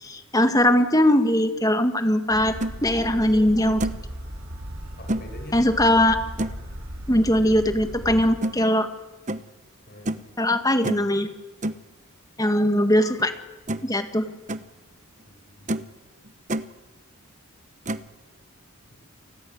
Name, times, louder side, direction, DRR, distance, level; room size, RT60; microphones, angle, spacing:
voice 1, 0.0-2.5 2.8-3.8 5.5-6.2 7.1-8.9 10.4-11.3 12.4-13.3 13.8-14.2, left 1 dB, 15° left, 7 dB, 1.9 m, -20 dB
sound 1, 2.3-8.4, equal, 70° right, 6.9 m, -37 dB
sound 2, 2.6-2.7 3.3-3.4 3.8-4.1 5.1-5.3 6.4-6.7 8.4-8.6 9.3-9.5 10.0-10.3 10.8-11.1 11.6-11.8 13.2-13.3 13.7-14.0 14.3-14.6 15.2-15.3 15.7-15.9 16.2-16.7 17.8-18.1, right 1 dB, 35° right, 0.9 m, -29 dB
voice 2, 5.0-5.6 9.9-10.2 15.3-16.0 18.9-19.0, left 1 dB, 45° left, 4 dB, 7.0 m, -44 dB
29.5 x 20.0 x 8.1 m, 1.2 s
head